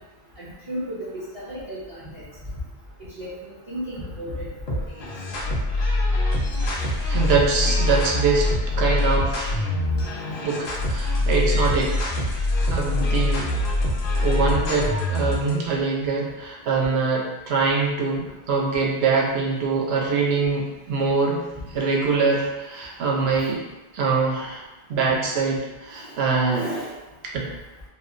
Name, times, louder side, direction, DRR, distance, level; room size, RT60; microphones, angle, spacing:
voice 1, 0.4-2.2 3.2-5.0 26.5-26.9, equal, 35° right, -10 dB, 0.7 m, -34 dB
sound 1, 4.7-15.5, left 1 dB, 65° left, 0.7 m, -24 dB
voice 2, 7.1-8.5 8.8-9.6 10.4-11.9 12.7-13.6 14.2-21.4 21.7-23.6 23.9-24.6 24.9-26.7 27.3-27.5, right 4 dB, 85° right, -2 dB, 0.8 m, -23 dB
2.9 x 2.0 x 2.4 m, 1.0 s
omnidirectional pair, 1.0 m